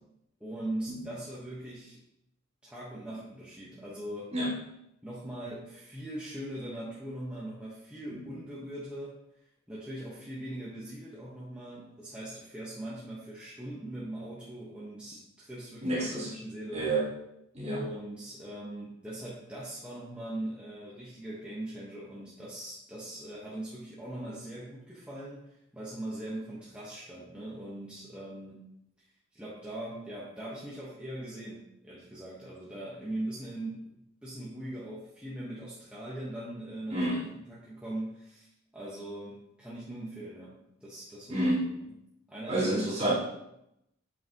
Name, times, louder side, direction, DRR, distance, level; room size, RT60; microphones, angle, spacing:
voice 1, 0.4-2.0 2.6-4.3 5.0-9.2 9.7-16.9 17.6-28.7 29.3-34.0 34.2-37.1 37.4-41.5 41.8-41.9 42.3-42.7, right 1 dB, 5° right, -8 dB, 1.2 m, -41 dB
voice 2, 15.8-16.3 16.7-17.1 17.5-17.9 36.9-37.2 41.3-41.7 42.5-43.1, right 1 dB, 30° right, -9 dB, 2.9 m, -29 dB
8.0 x 5.9 x 3.0 m, 0.81 s
head